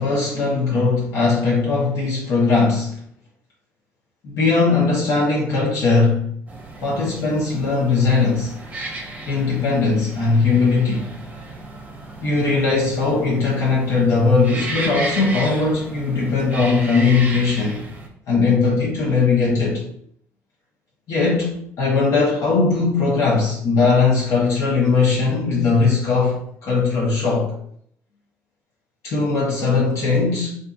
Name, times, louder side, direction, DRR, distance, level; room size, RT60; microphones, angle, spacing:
voice 1, 0.0-3.0 4.2-6.3 6.8-8.5 9.3-11.1 12.2-17.8 18.3-19.8 21.1-27.5 29.0-30.6, left 4 dB, 65° left, -4 dB, 0.7 m, -19 dB
sound 1, 6.5-18.1, right 2 dB, 25° right, 0.7 m, -34 dB
2.6 x 2.5 x 2.2 m, 0.66 s
supercardioid pair, 85°, 6 cm